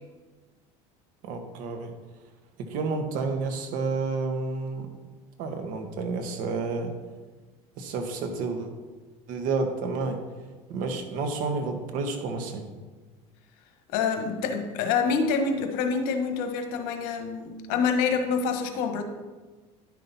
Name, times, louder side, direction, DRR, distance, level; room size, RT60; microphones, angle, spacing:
voice 1, 1.2-1.9 2.6-4.9 5.4-6.9 7.8-8.7 9.3-10.2 10.7-12.7, right 4 dB, 65° right, 5 dB, 1.4 m, -30 dB
voice 2, 13.9-19.0, left 5 dB, 70° left, 6 dB, 1.2 m, -26 dB
10.5 x 5.9 x 4.1 m, 1.3 s
supercardioid pair, 115°, 15 cm